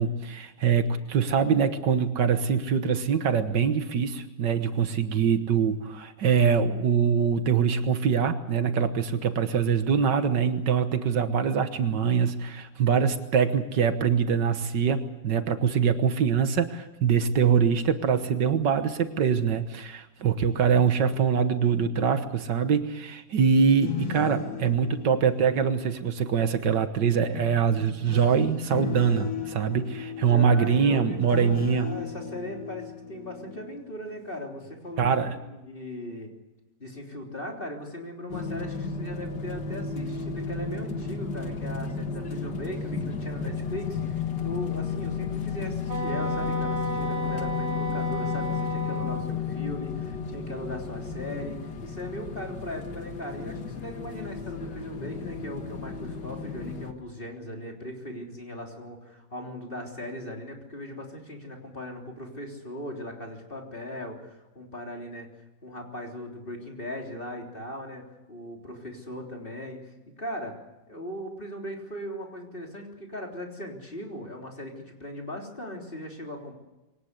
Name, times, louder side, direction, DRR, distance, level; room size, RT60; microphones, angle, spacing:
voice 1, 0.0-31.9 35.0-35.4, right 6 dB, 80° right, 9 dB, 1.9 m, -24 dB
sound 1, 23.6-26.5 27.3-34.2 34.6-34.9, left 6 dB, 60° left, 2.3 m, -38 dB
voice 2, 30.1-36.3 36.8-65.3 65.6-68.0 68.3-69.9 70.2-70.6 70.9-76.5, left 1 dB, 30° left, 1 dB, 3.7 m, -38 dB
sound 2, 38.3-56.9, left 6 dB, 80° left, 2.2 m, -33 dB
Wind instrument woodwind instrument, 45.9-49.3, right 3 dB, 40° right, 1.5 m, -33 dB
23.5 x 18.5 x 8.2 m, 1.0 s
omnidirectional pair, 1.9 m